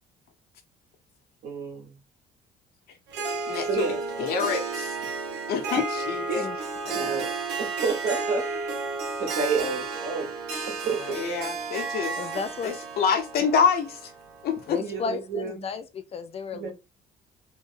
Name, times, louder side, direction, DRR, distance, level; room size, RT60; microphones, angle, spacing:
voice 1, 1.4-1.9 3.7-4.0 6.3-6.5 6.9-7.3 7.6-8.4 9.2-10.3 10.7-11.2 14.8-15.7 16.5-16.7, right 4 dB, 75° right, 1.6 m, -30 dB
Harp, 3.1-14.9, right 4 dB, 90° right, 1.0 m, -33 dB
voice 2, 3.5-3.9 4.2-5.0 5.5-6.2 6.9-7.3 11.1-12.2 12.6-14.1 14.4-14.8, left 6 dB, 65° left, 0.9 m, -26 dB
voice 3, 12.2-12.8 13.4-13.5 14.7-16.7, left 5 dB, 35° left, 0.4 m, -34 dB
3.2 x 2.2 x 3.3 m
cardioid pair, 110°, 17 cm